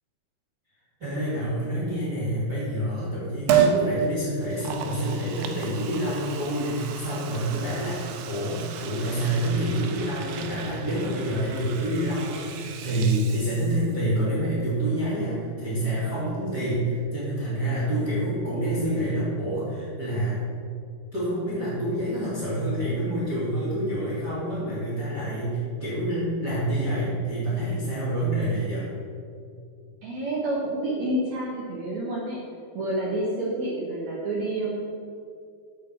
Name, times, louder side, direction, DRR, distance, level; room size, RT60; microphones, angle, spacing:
voice 1, 1.0-20.4 21.1-28.9, right 1 dB, 30° right, -9 dB, 2.7 m, -27 dB
Liquid, 3.5-3.8 4.4-14.1 14.4-14.5, right 8 dB, 85° right, 2.9 m, -31 dB
voice 2, 30.0-32.4 32.7-34.8, right 1 dB, 60° right, -5 dB, 2.1 m, -28 dB
9.9 x 5.7 x 7.6 m, 2.3 s
omnidirectional pair, 4.6 m